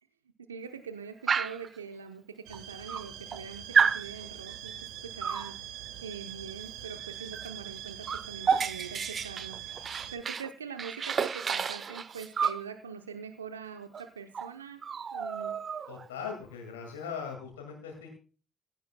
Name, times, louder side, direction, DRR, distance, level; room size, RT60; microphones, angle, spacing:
voice 1, 0.4-9.6 10.1-14.8 15.1-15.5, right 6 dB, 90° right, 8 dB, 0.7 m, -43 dB
Dog, 1.3-1.7 2.5-2.6 2.9-3.4 3.7-4.1 5.2-5.5 7.3-7.5 7.8-10.5 10.8-12.6 13.9-14.0 14.3-14.5 14.8-16.1, right 6 dB, 45° right, 0.7 m, -30 dB
sound 1, 2.5-10.2, right 11 dB, 70° right, 1.7 m, -43 dB
voice 2, 15.9-18.1, left 6 dB, 80° left, 1 dB, 2.1 m, -39 dB
16.0 x 14.5 x 2.2 m, 0.35 s
figure-of-eight pair, 45°, 0 cm